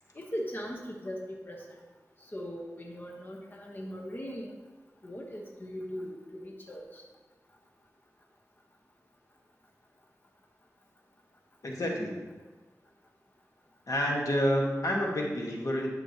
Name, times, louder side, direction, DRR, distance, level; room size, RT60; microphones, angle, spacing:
voice 1, 0.1-1.6 2.3-4.6 5.0-7.0, equal, 35° left, -1 dB, 1.1 m, -39 dB
voice 2, 11.6-12.2 13.9-15.9, equal, 70° left, -1 dB, 1.5 m, -29 dB
11.0 x 6.2 x 2.9 m, 1.3 s
wide cardioid pair, 60°, 6 cm